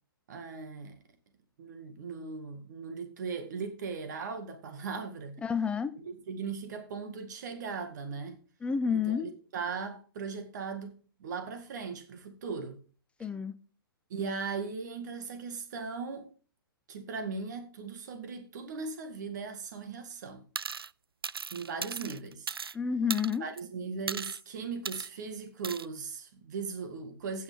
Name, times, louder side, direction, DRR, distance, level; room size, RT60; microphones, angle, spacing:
voice 1, 0.3-1.0 1.6-5.4 6.0-8.4 8.9-12.8 14.1-16.3 16.9-20.5 21.5-22.6 23.4-27.4, right 5 dB, 50° right, 1.9 m, -38 dB
voice 2, 5.4-5.9 8.6-9.3 13.2-13.5 22.7-23.5, left 6 dB, 10° left, 0.5 m, -29 dB
sound 1, 20.6-20.9 21.2-22.8 23.1-23.6 24.1-24.4 24.9-25.1 25.6-25.9, right 6 dB, 75° right, 0.4 m, -37 dB
16.5 x 6.3 x 3.7 m
figure-of-eight pair, 120°, 12 cm